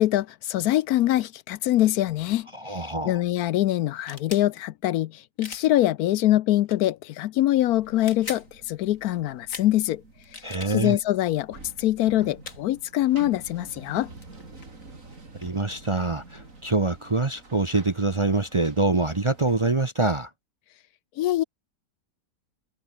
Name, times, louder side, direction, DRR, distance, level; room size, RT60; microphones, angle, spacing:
voice 1, 0.0-10.0 10.3-10.4 10.7-14.1 21.2-21.4, left 14 dB, 70° left, 1.0 m, -24 dB
voice 2, 2.5-3.2 10.4-11.0 15.4-20.3, right 3 dB, 30° right, 0.6 m, -25 dB
sound 1, 4.0-4.5 5.4-5.7 6.7-6.9 7.9-8.5 9.5-9.7 10.2-10.7 11.7-11.8 12.4-12.6 14.0-14.1 14.2-15.5, left 3 dB, 50° left, 3.4 m, -40 dB
sound 2, 7.7-19.7, right 3 dB, 50° right, 4.3 m, -48 dB
omnidirectional pair, 1.8 m